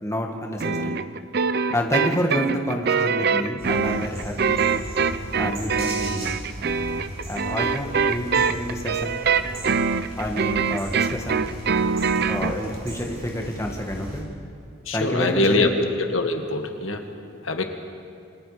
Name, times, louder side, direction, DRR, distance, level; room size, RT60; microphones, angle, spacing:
voice 1, 0.0-1.0 1.7-4.6 5.4-6.3 7.3-9.2 10.2-11.4 12.3-14.2 14.9-15.8, equal, 15° left, 1 dB, 2.0 m, -28 dB
sound 1, 0.6-12.6, right 5 dB, 55° right, 0.7 m, -24 dB
sound 2, 3.6-14.2, equal, 30° right, 7.3 m, -37 dB
voice 2, 14.9-15.8 16.1-17.0 17.5-17.6, left 2 dB, 90° left, 5 dB, 1.9 m, -23 dB
28.0 x 23.0 x 5.2 m, 2.5 s
head